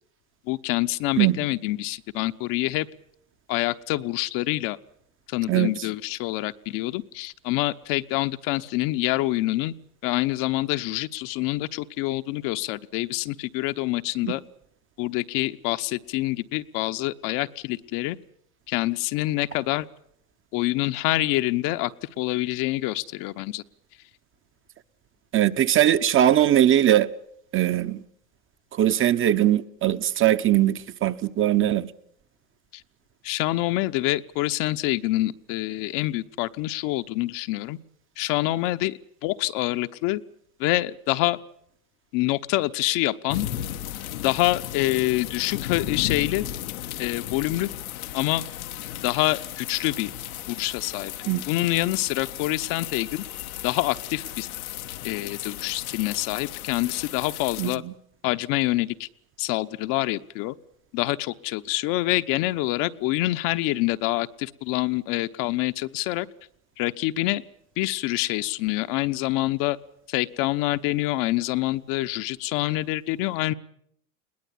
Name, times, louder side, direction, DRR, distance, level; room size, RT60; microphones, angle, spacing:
voice 1, 0.5-2.9 3.5-4.8 5.3-9.7 10.0-14.4 15.0-18.2 18.7-19.9 20.5-21.9 22.2-23.6 33.2-37.8 38.2-40.2 40.6-41.4 42.1-43.5 44.2-46.4 47.0-47.7 48.1-48.4 49.0-50.1 50.5-51.1 51.5-53.2 53.6-54.5 55.0-57.8 58.2-59.1 59.4-60.5 60.9-66.3 66.8-67.4 67.8-69.8 70.1-73.5, left 18 dB, 50° left, 1.1 m, -26 dB
voice 2, 25.3-27.1 27.5-28.0 28.7-31.9 51.3-51.4 57.6-57.9, right 12 dB, 30° right, 1.0 m, -21 dB
sound 1, 43.3-57.8, left 12 dB, 85° left, 1.4 m, -35 dB
21.5 x 18.5 x 9.9 m
supercardioid pair, 120°, 41 cm